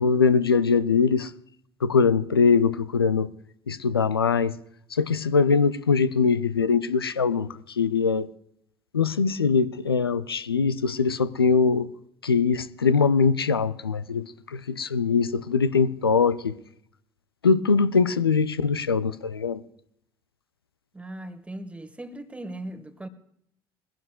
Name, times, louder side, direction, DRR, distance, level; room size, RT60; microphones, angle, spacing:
voice 1, 0.0-1.3 1.8-3.3 3.7-4.6 4.9-8.3 8.9-11.9 12.2-16.6 17.4-19.6, left 5 dB, 85° left, 0.4 m, -22 dB
voice 2, 20.9-23.1, right 1 dB, 10° right, 1.3 m, -38 dB
21.5 x 16.0 x 2.2 m
figure-of-eight pair, 55°, 12 cm